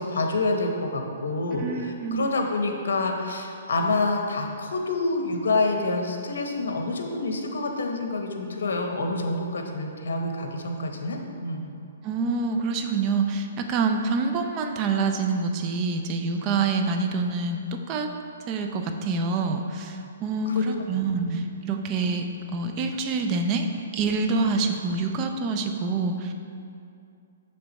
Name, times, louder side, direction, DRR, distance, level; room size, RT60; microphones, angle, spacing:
voice 1, 0.0-11.6 20.5-20.6 20.9-21.4, left 2 dB, 75° left, 3 dB, 0.8 m, -27 dB
voice 2, 1.6-2.4 12.0-17.6 17.9-18.1 18.5-22.2 22.5-23.7 23.9-26.3, right 4 dB, 30° right, 4 dB, 0.5 m, -26 dB
6.9 x 3.4 x 5.3 m, 2.5 s
hypercardioid pair, 145°, 0 cm